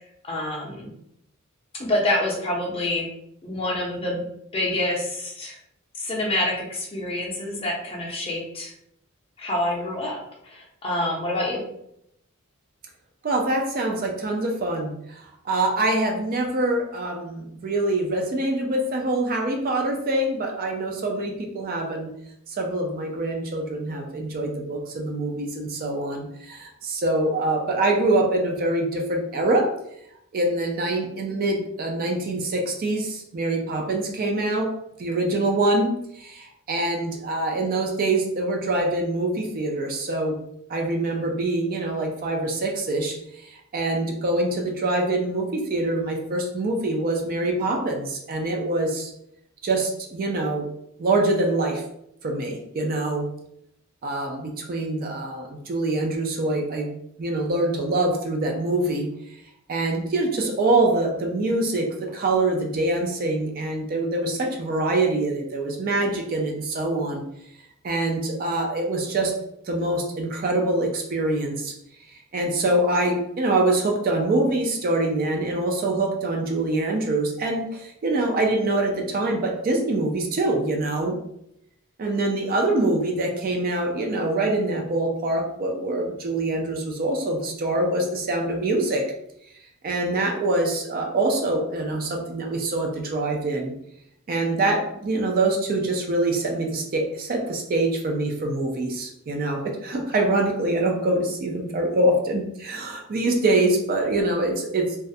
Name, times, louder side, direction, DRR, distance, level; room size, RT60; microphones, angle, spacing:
voice 1, 0.3-0.9 1.7-3.1 3.4-4.2 4.5-5.5 6.0-8.7 9.4-11.6, left 1 dB, 25° left, -2 dB, 0.5 m, -27 dB
voice 2, 13.2-22.1 22.5-29.7 30.3-34.7 35.0-40.4 40.7-43.2 43.4-49.1 49.6-50.7 51.0-51.8 52.2-53.3 54.0-56.9 57.2-59.1 59.7-67.2 67.8-69.3 69.7-71.7 72.3-81.2 82.0-89.0 89.8-93.7 94.3-105.0, right 2 dB, 40° right, 2 dB, 0.4 m, -24 dB
2.3 x 2.1 x 2.6 m, 0.76 s
head